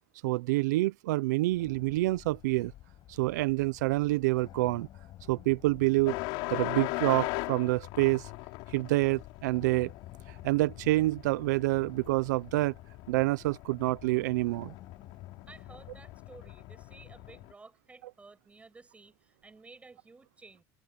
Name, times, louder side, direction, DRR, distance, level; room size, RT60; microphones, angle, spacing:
voice 1, 0.2-2.7 3.1-4.9 5.3-6.2 6.5-8.3 8.7-9.9 10.3-12.7 13.1-14.7, right 20 dB, 85° right, 0.7 m, -27 dB
sound 1, 1.5-17.5, left 14 dB, 50° left, 7.7 m, -52 dB
sound 2, 6.1-17.5, left 25 dB, 65° left, 4.5 m, -40 dB
voice 2, 15.5-20.6, right 3 dB, 15° right, 7.4 m, -54 dB
supercardioid pair, 120°, 9 cm